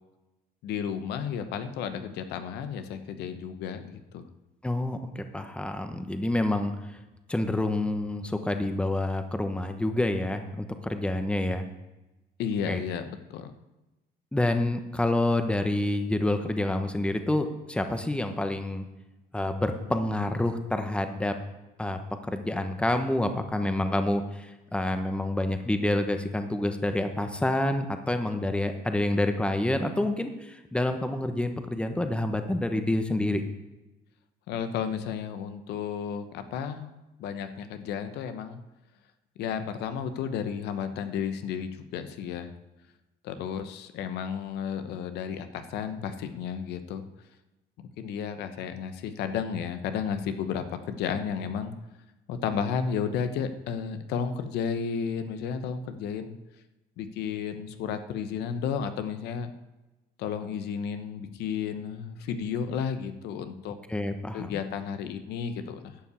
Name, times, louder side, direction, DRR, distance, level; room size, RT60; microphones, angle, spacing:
voice 1, 0.6-4.3 12.4-13.5 34.5-36.9 37.2-38.6 39.4-42.5 43.2-47.1 47.8-51.7 52.3-56.4 57.0-59.5 60.2-63.8 64.3-66.0, left 7 dB, 80° left, 9 dB, 0.9 m, -33 dB
voice 2, 4.6-6.7 7.3-11.6 12.7-12.8 14.3-18.9 19.3-21.3 21.8-22.0 22.3-33.4 63.9-64.6, left 1 dB, 5° left, 7 dB, 1.1 m, -28 dB
11.5 x 5.6 x 8.3 m, 1.0 s
cardioid pair, 110°, 17 cm